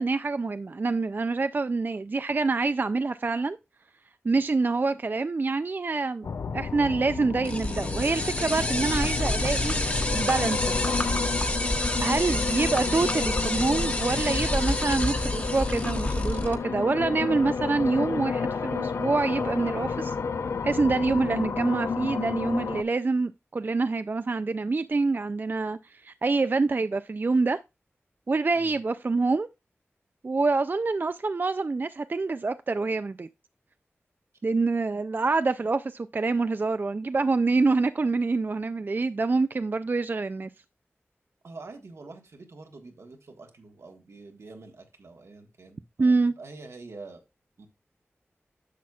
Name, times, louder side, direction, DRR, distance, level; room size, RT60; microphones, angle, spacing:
voice 1, 0.0-3.6 4.2-6.3 6.5-9.7 10.1-11.1 12.0-20.1 20.6-27.6 28.3-29.5 30.2-33.3 34.4-40.5 46.0-46.3, right 3 dB, 45° right, 0.3 m, -26 dB
sound 1, 6.2-22.8, left 5 dB, 85° left, 0.4 m, -31 dB
sound 2, 7.4-16.5, left 1 dB, 30° left, 1.3 m, -28 dB
voice 2, 41.4-47.2 47.6-47.7, right 3 dB, 80° right, 1.3 m, -46 dB
10.0 x 6.1 x 2.3 m
cardioid pair, 45°, 5 cm